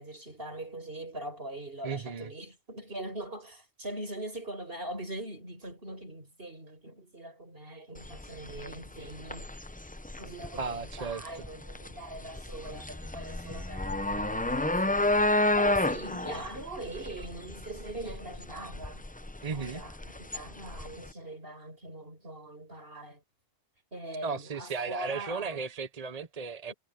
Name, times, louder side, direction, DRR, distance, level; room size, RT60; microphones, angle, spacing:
voice 1, 0.0-9.5 10.2-19.1 19.5-23.2 23.9-25.6 26.7-26.8, right 1 dB, 55° right, 6.4 m, -42 dB
voice 2, 1.8-2.3 10.6-11.2 19.4-19.8 24.2-26.7, right 5 dB, 35° right, 0.9 m, -35 dB
sound 1, 8.0-21.1, left 2 dB, 10° left, 0.5 m, -31 dB
omnidirectional pair, 1.1 m